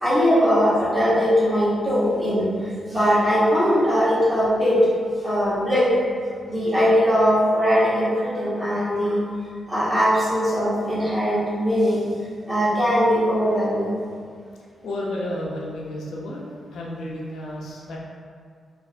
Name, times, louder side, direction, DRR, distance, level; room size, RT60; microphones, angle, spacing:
voice 1, 0.0-2.5 2.9-4.8 5.2-5.9 6.5-9.2 9.7-12.0 12.5-13.9, equal, 15° right, -10 dB, 1.3 m, -20 dB
voice 2, 14.8-16.4 16.7-18.0, left 1 dB, 85° left, -4 dB, 0.6 m, -31 dB
4.7 x 2.6 x 2.6 m, 2.2 s
wide cardioid pair, 135°, 0 cm